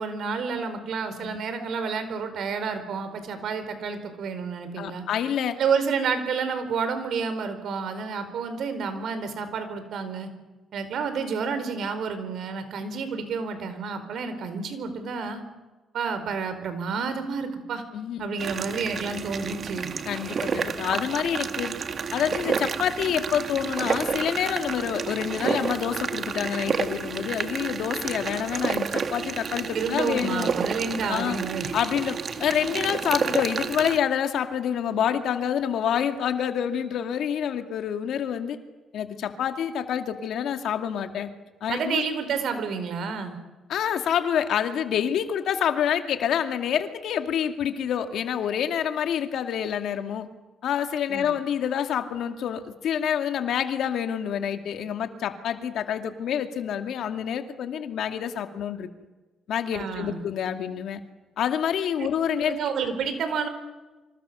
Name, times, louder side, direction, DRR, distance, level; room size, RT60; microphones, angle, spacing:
voice 1, 0.0-5.0 5.6-10.3 10.7-15.4 15.9-17.8 18.2-19.9 29.7-31.7 41.7-43.4 51.1-51.3 59.7-60.2 62.0-62.1 62.4-63.5, right 5 dB, 70° right, 9 dB, 4.7 m, -30 dB
voice 2, 4.8-5.6 17.9-18.3 20.1-21.7 22.1-30.5 31.1-31.4 31.7-38.6 38.9-41.3 41.6-42.0 43.7-50.3 50.6-58.9 59.5-61.0 61.4-62.6, left 9 dB, 75° left, 7 dB, 2.3 m, -27 dB
sound 1, 18.4-34.0, right 6 dB, 50° right, 1.9 m, -30 dB
27.0 x 26.0 x 7.0 m, 1.2 s
cardioid pair, 90°, 0 cm